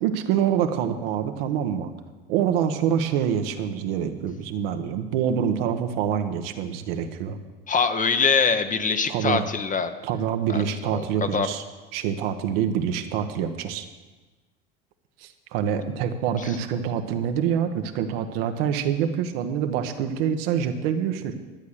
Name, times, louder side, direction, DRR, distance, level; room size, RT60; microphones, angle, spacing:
voice 1, 0.0-1.9 2.3-7.4 9.1-9.5 10.0-11.6 11.9-13.9 15.2-21.3, right 8 dB, 70° right, 7 dB, 1.3 m, -26 dB
voice 2, 7.7-9.9 10.5-10.6 10.9-11.5 16.4-16.6, left 5 dB, 25° left, 9 dB, 1.0 m, -23 dB
12.0 x 8.3 x 6.7 m, 1.2 s
hypercardioid pair, 75°, 31 cm